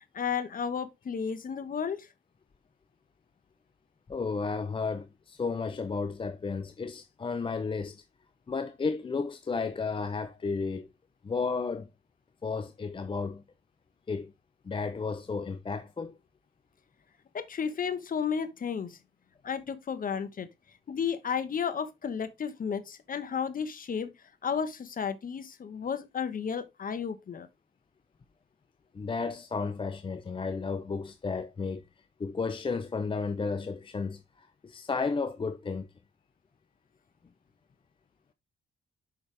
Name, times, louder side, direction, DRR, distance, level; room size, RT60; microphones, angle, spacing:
voice 1, 0.1-2.1 17.3-19.0 19.4-20.5 20.9-24.1 24.4-27.5, left 7 dB, 45° left, 1.2 m, -33 dB
voice 2, 4.1-8.0 8.5-10.9 11.2-11.9 12.4-13.4 14.1-14.3 14.6-16.2 28.9-31.8 32.2-35.9, left 4 dB, 25° left, 0.6 m, -33 dB
6.7 x 5.8 x 3.3 m
cardioid pair, 90°, 20 cm